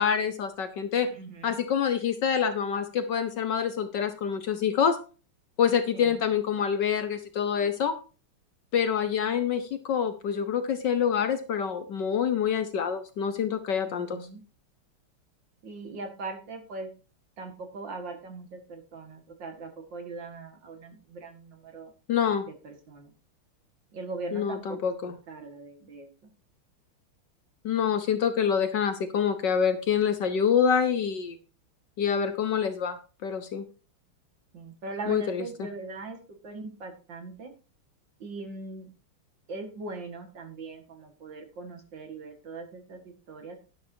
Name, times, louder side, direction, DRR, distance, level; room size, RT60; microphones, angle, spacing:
voice 1, 0.0-1.1 1.4-5.0 5.6-7.9 8.7-14.2 22.1-22.5 24.3-25.1 27.6-31.4 32.0-33.0 33.2-33.6 35.1-35.4, left 7 dB, 60° left, 9 dB, 1.4 m, -26 dB
voice 2, 1.1-1.6 5.9-6.2 13.8-14.4 15.6-16.9 17.4-21.9 22.5-23.1 23.9-26.3 34.5-36.2 36.4-37.5 38.2-38.9 39.5-43.6, right 3 dB, 55° right, 5 dB, 2.5 m, -40 dB
11.5 x 11.0 x 2.8 m, 0.34 s
omnidirectional pair, 2.4 m